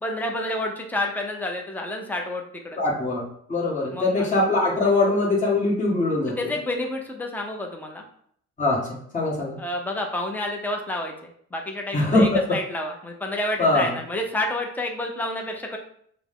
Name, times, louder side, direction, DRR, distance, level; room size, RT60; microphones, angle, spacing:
voice 1, 0.0-2.8 3.9-4.3 6.4-8.0 9.6-15.8, left 1 dB, 5° left, 1 dB, 0.7 m, -29 dB
voice 2, 2.8-3.2 3.5-6.3 8.6-8.9 9.1-9.6 11.9-12.4 13.6-13.9, left 2 dB, 25° left, -5 dB, 1.6 m, -22 dB
5.7 x 2.2 x 3.7 m, 0.65 s
cardioid pair, 90°, 30 cm